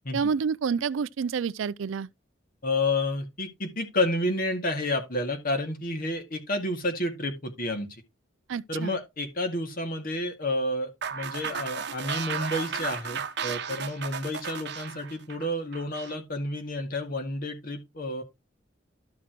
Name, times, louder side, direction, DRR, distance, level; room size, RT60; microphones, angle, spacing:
voice 1, 0.1-2.1 8.5-9.0, right 6 dB, 90° right, 0.4 m, -28 dB
voice 2, 2.6-8.0 8.7-18.2, left 1 dB, 50° left, 2.1 m, -30 dB
sound 1, 11.0-16.2, right 6 dB, 60° right, 0.8 m, -34 dB
12.5 x 5.9 x 3.0 m
head